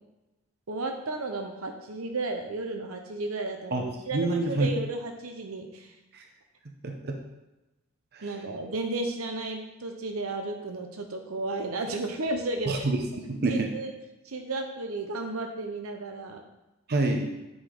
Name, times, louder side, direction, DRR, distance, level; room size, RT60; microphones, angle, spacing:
voice 1, 0.7-5.9 8.2-12.9 13.5-13.9 14.2-16.4, right 2 dB, 85° right, 4 dB, 0.9 m, -33 dB
voice 2, 4.1-4.7 6.1-6.2 6.8-7.1 8.1-8.2 12.7-13.7 16.9-17.3, right 2 dB, 50° right, 3 dB, 0.8 m, -27 dB
8.2 x 5.1 x 3.8 m, 1.0 s
head